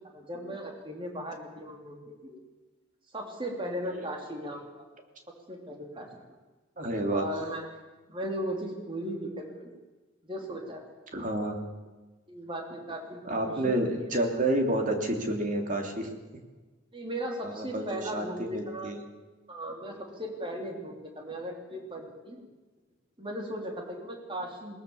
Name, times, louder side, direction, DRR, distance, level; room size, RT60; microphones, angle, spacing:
voice 1, 0.1-2.4 3.1-4.8 5.5-6.2 7.1-7.6 8.1-9.7 10.2-10.8 12.3-13.9 16.9-18.9 19.5-22.4 23.2-24.8, right 1 dB, 25° right, 2 dB, 3.3 m, -37 dB
voice 2, 6.8-7.5 11.1-11.6 13.2-16.1 17.4-19.0, right 1 dB, 40° right, 3 dB, 3.2 m, -30 dB
21.5 x 19.5 x 7.2 m, 1.2 s
head